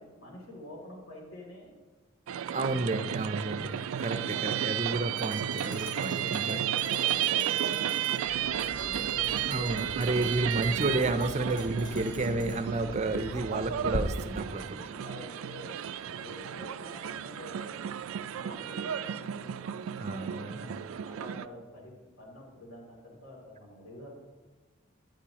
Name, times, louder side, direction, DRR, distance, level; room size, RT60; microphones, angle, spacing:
voice 1, 0.0-1.7 4.1-4.8 5.9-11.0 14.7-15.7 16.1-19.5 20.0-20.7 21.0-24.1, left 1 dB, 70° left, -2 dB, 2.9 m, -47 dB
sound 1, 2.3-21.5, right 10 dB, 85° right, 0.3 m, -33 dB
voice 2, 2.5-6.6 9.4-14.8 20.0-20.7, right 2 dB, 35° right, 9 dB, 0.5 m, -31 dB
sound 2, 5.2-8.2 8.6-12.6, left 1 dB, 20° left, 2.9 m, -48 dB
Bird vocalization bird call bird song, 8.2-14.0, left 1 dB, 90° left, 0.9 m, -42 dB
13.5 x 9.0 x 2.9 m, 1.3 s
head